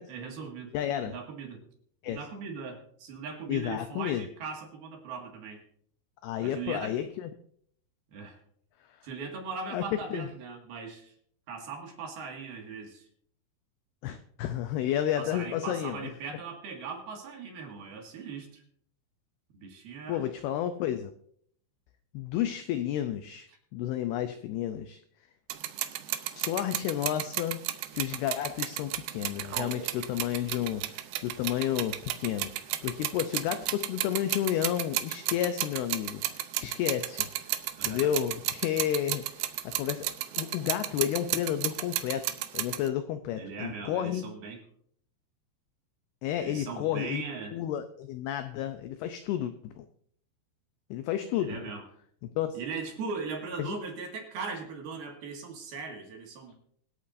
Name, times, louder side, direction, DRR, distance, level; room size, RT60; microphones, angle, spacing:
voice 1, 0.1-0.7 1.0-1.6 2.1-5.6 6.4-6.9 8.1-8.4 9.0-11.1 11.5-13.1 15.2-18.6 19.5-20.3 37.8-38.1 43.4-44.6 46.4-47.6 51.4-51.9 52.5-56.5, right 5 dB, 60° right, 2 dB, 3.5 m, -39 dB
voice 2, 0.7-1.2 2.0-2.2 3.5-4.3 6.2-7.3 8.9-9.0 9.7-9.8 10.1-10.3 14.0-16.1 20.1-21.1 22.1-25.0 26.3-27.6 27.9-37.3 37.8-39.3 39.6-40.1 40.4-44.3 46.2-47.2 47.5-49.9 50.9-51.7 52.2-52.6 53.6-53.8, left 11 dB, 85° left, 9 dB, 2.2 m, -31 dB
sound 1, 25.5-42.9, right 14 dB, 80° right, 2.4 m, -33 dB
25.5 x 8.5 x 2.6 m, 0.63 s
omnidirectional pair, 5.3 m